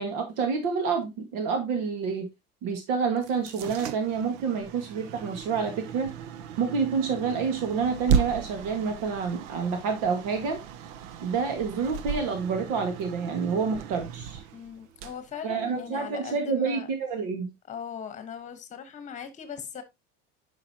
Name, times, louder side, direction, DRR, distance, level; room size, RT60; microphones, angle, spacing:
voice 1, 0.0-2.3 2.6-6.1 6.6-10.6 11.2-14.4 15.4-17.5, right 5 dB, 70° right, 1.8 m, -28 dB
sound 1, 3.2-16.1, right 7 dB, 85° right, 0.9 m, -35 dB
voice 2, 14.5-16.9 17.7-19.8, left 8 dB, 25° left, 1.3 m, -39 dB
10.0 x 5.7 x 2.9 m
cardioid pair, 165°, 30 cm